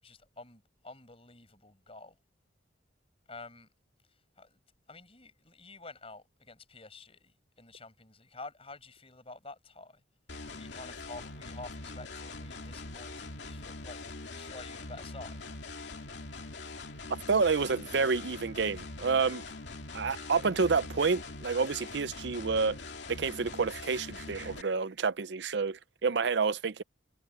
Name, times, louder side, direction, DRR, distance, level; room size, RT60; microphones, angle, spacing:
voice 1, 0.0-2.2 3.3-3.7 4.4-4.6 4.9-10.0 10.5-15.4, left 3 dB, 30° left, 5.3 m, -49 dB
sound 1, 10.3-24.6, left 3 dB, 65° left, 2.6 m, -43 dB
voice 2, 17.1-19.4 19.9-22.8 23.1-26.8, right 4 dB, 60° right, 0.6 m, -29 dB
head